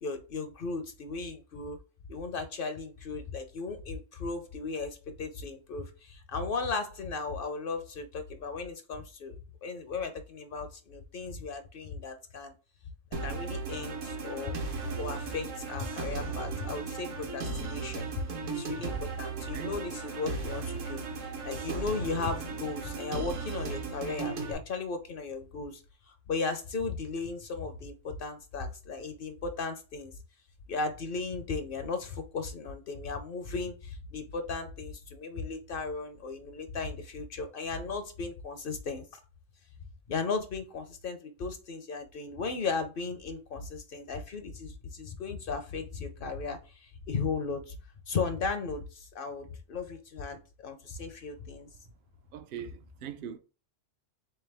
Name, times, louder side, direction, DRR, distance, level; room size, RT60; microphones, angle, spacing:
voice 1, 0.0-1.8 2.1-9.4 9.6-12.5 13.2-14.6 15.0-18.1 18.5-30.1 30.7-39.0 40.1-47.8 48.1-51.7, left 4 dB, 60° left, 0.6 m, -36 dB
sound 1, 13.1-24.5, right 4 dB, 80° right, 1.3 m, -36 dB
voice 2, 52.3-53.4, right 9 dB, 60° right, 0.6 m, -41 dB
3.7 x 3.4 x 3.3 m
omnidirectional pair, 1.3 m